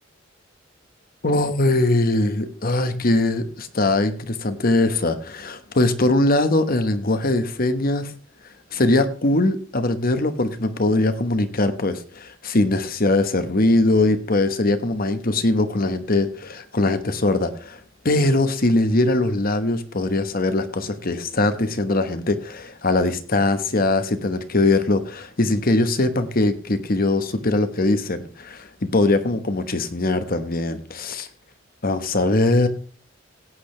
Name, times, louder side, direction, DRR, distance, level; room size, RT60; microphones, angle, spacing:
voice 1, 1.2-8.1 8.7-17.8 18.0-31.3 31.8-32.7, left 2 dB, 50° left, 10 dB, 1.2 m, -21 dB
17.0 x 8.6 x 3.3 m, 0.40 s
head